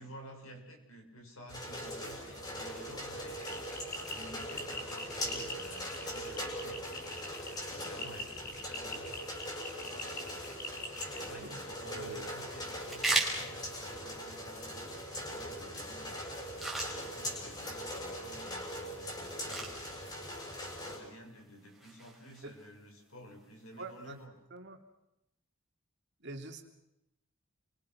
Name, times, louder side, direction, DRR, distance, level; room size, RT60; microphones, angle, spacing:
voice 1, 0.0-3.8 4.1-7.2 7.7-9.1 9.8-16.3 16.9-20.1 20.8-24.3, equal, 80° left, 3 dB, 6.7 m, -53 dB
sound 1, 1.5-21.0, equal, 20° left, 6.8 m, -41 dB
sound 2, 3.4-11.3, left 2 dB, 45° left, 5.6 m, -44 dB
sound 3, 11.2-24.2, right 2 dB, ahead, 4.9 m, -41 dB
voice 2, 11.4-12.4 22.4-22.5 23.8-24.2 24.5-24.8 26.2-26.6, right 2 dB, 55° right, 4 dB, 3.1 m, -45 dB
29.5 x 24.5 x 6.2 m, 0.88 s
head